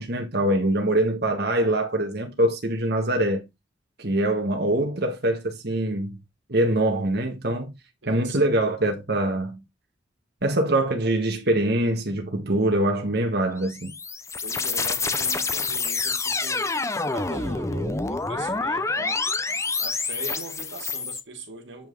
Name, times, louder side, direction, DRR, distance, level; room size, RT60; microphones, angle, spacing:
voice 1, 0.0-3.5 4.0-6.2 6.5-7.7 8.1-9.6 10.4-13.9, right 1 dB, 60° right, 1.8 m, -24 dB
voice 2, 8.0-8.4 14.4-19.3 19.8-21.9, right 2 dB, 85° right, 2.3 m, -40 dB
sound 1, 13.6-21.2, left 4 dB, 15° left, 0.8 m, -27 dB
8.9 x 5.6 x 4.0 m
head